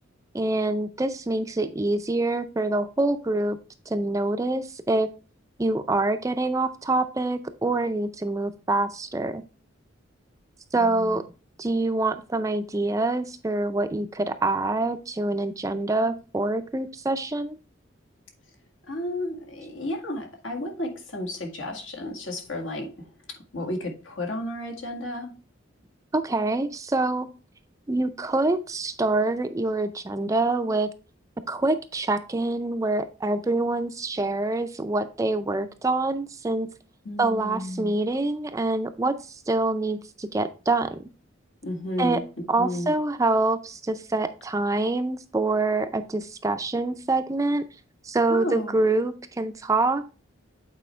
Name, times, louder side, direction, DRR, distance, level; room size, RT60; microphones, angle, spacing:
voice 1, 0.3-3.6 3.9-5.1 5.6-9.4 10.7-11.2 11.6-17.6 26.1-27.3 27.9-30.9 31.5-36.7 37.2-41.0 42.0-42.2 42.5-47.6 48.0-50.1, right 2 dB, 15° right, 0.4 m, -25 dB
voice 2, 10.8-11.2 18.9-25.3 37.1-37.9 41.6-42.9 48.3-48.8, left 1 dB, 80° left, 1.8 m, -33 dB
8.4 x 4.3 x 3.2 m
head